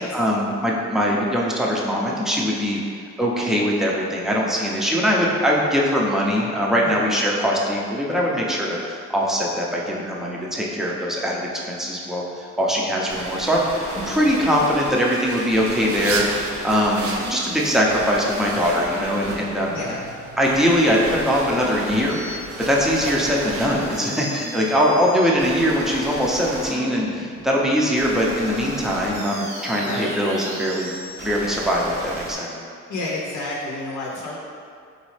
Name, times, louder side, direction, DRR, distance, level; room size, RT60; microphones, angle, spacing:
voice 1, 0.1-2.8 3.2-19.8 20.4-30.9 31.2-32.5, equal, ahead, -3 dB, 0.6 m, -22 dB
sound 1, 13.1-32.3, right 1 dB, 70° right, 1.2 m, -35 dB
sound 2, 13.9-23.7, right 3 dB, 50° right, 0.5 m, -35 dB
voice 2, 19.7-20.1 24.2-24.5 29.6-30.1 32.9-34.4, left 2 dB, 75° left, -3 dB, 0.7 m, -31 dB
4.0 x 3.3 x 3.2 m, 2.3 s
cardioid pair, 90°, 30 cm